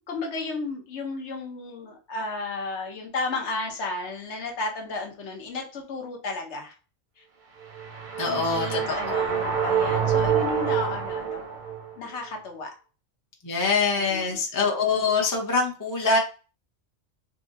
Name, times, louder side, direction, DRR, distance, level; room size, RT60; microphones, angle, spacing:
voice 1, 0.1-6.7 7.2-7.3 8.3-11.6 12.0-12.7 14.0-14.4, left 3 dB, 65° left, 2 dB, 1.0 m, -33 dB
sound 1, 7.6-11.9, right 7 dB, 45° right, 0.7 m, -26 dB
voice 2, 8.2-9.2 13.4-16.2, left 4 dB, 25° left, 0 dB, 0.4 m, -24 dB
3.9 x 2.5 x 2.5 m, 0.36 s
omnidirectional pair, 1.3 m